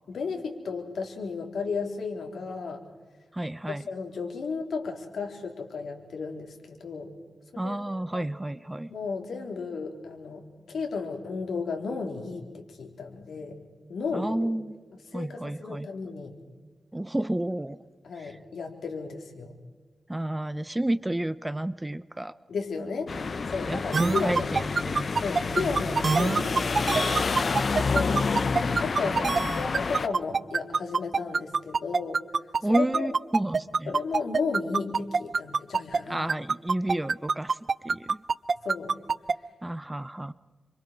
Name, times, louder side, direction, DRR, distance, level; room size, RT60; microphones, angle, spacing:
voice 1, 0.1-2.8 3.7-7.1 7.6-8.3 8.9-13.6 13.9-14.5 15.1-16.3 18.0-19.6 22.5-24.6 25.2-27.6 27.8-28.2 28.6-29.2 29.5-32.2 32.7-33.1 33.9-36.3 38.6-38.9, left 4 dB, 85° left, 3 dB, 3.7 m, -34 dB
voice 2, 3.3-3.8 7.6-8.9 14.1-14.8 15.1-15.9 16.9-17.8 18.2-18.4 20.1-22.4 23.6-25.2 25.6-26.0 29.0-29.6 32.6-33.9 36.1-37.6 37.8-38.2 39.6-40.3, right 1 dB, 15° right, 16 dB, 0.7 m, -31 dB
sound 1, 23.1-30.1, left 4 dB, 55° left, 0.8 m, -28 dB
sound 2, 23.9-36.0 36.3-39.3, right 4 dB, 50° right, 0.6 m, -25 dB
28.0 x 26.0 x 4.6 m, 1.4 s
wide cardioid pair, 90°, 0 cm